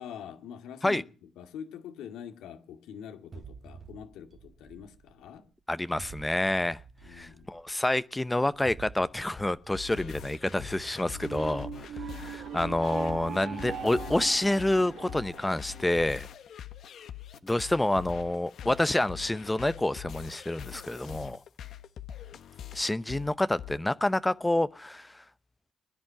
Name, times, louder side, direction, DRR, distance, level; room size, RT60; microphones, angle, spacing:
voice 1, 0.0-5.5 7.0-7.5, left 8 dB, 85° left, 2.2 m, -44 dB
sound 1, 3.3-5.5 6.0-7.8 8.5-13.6, right 5 dB, 40° right, 2.0 m, -50 dB
voice 2, 5.7-6.8 7.1-16.3 17.4-21.4 22.7-25.2, left 1 dB, 10° left, 0.7 m, -28 dB
sound 2, 9.4-23.8, left 10 dB, 65° left, 1.2 m, -44 dB
sound 3, 11.1-16.2, right 8 dB, 75° right, 1.8 m, -41 dB
22.0 x 10.5 x 5.7 m
cardioid pair, 90°, 0 cm